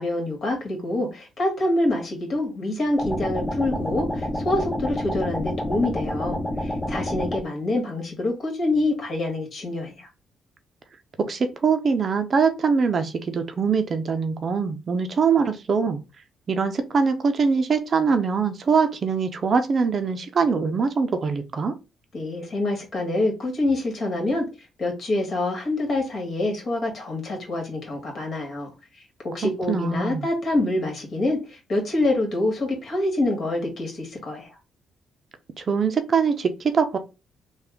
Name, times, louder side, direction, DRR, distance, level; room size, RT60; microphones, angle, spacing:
voice 1, 0.0-10.1 22.1-24.5 24.8-28.7 29.2-34.5, left 2 dB, 50° left, 1.9 m, -26 dB
sound 1, 3.0-7.4, left 1 dB, 20° left, 1.1 m, -28 dB
voice 2, 11.2-16.0 16.5-21.7 29.4-30.3 35.6-37.0, right 5 dB, 45° right, 0.6 m, -23 dB
3.4 x 2.3 x 3.6 m
cardioid pair, 90°, 0 cm